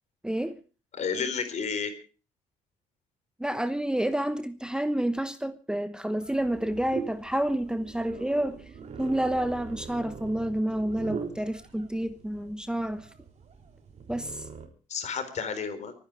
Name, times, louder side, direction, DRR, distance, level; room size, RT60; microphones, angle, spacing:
voice 1, 0.2-0.6 3.4-8.6 9.0-13.1 14.1-14.4, right 1 dB, 5° right, 1.1 m, -29 dB
voice 2, 0.9-1.9 14.9-15.9, left 6 dB, 55° left, 4.0 m, -31 dB
sound 1, 6.2-14.7, right 6 dB, 50° right, 3.6 m, -42 dB
24.0 x 10.0 x 4.9 m
cardioid pair, 85°, 14 cm